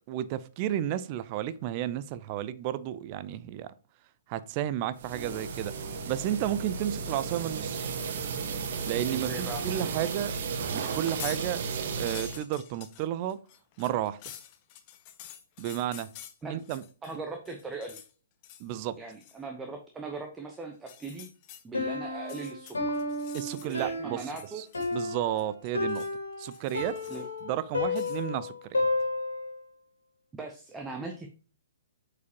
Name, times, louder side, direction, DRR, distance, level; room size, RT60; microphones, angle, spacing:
voice 1, 0.1-3.7 4.3-5.7 6.1-7.9 8.9-10.3 10.7-11.6 12.0-13.4 13.8-14.2 15.6-16.1 16.5-16.8 17.1-17.2 18.6-19.0 23.3-24.2 24.5-24.7 24.9-26.1 26.4-27.0 27.4-28.9, right 12 dB, 35° right, 15 dB, 0.5 m, -32 dB
sound 1, 4.9-12.4, right 5 dB, 50° right, 1.2 m, -34 dB
voice 2, 9.1-9.6 16.4-16.6 17.0-18.0 19.0-21.3 21.6-23.0 23.6-24.7 27.1-27.3 30.3-31.3, right 3 dB, 10° right, 3 dB, 0.9 m, -39 dB
sound 2, 10.9-11.4 11.8-17.2 17.4-18.1 18.4-18.7 19.1-19.4 20.7-21.6 22.2-23.9 24.2-25.1 25.4-26.2 26.5-27.4 27.9-28.2, left 11 dB, 35° left, 0.9 m, -47 dB
Piano, 21.7-29.6, left 2 dB, 80° left, 2.2 m, -32 dB
8.1 x 4.9 x 2.9 m, 0.37 s
figure-of-eight pair, 120°, 0 cm